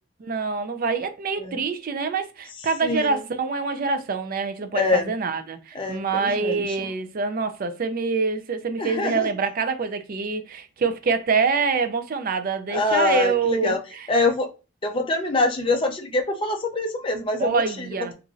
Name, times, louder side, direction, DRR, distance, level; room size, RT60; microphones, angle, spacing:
voice 1, 0.2-14.1 17.4-18.1, right 4 dB, 40° right, 0.3 m, -25 dB
voice 2, 2.8-3.2 4.7-5.1 5.7-6.9 8.8-9.3 12.7-13.8 14.1-14.5 14.8-18.1, left 2 dB, 25° left, 0.4 m, -25 dB
2.9 x 2.5 x 2.5 m
head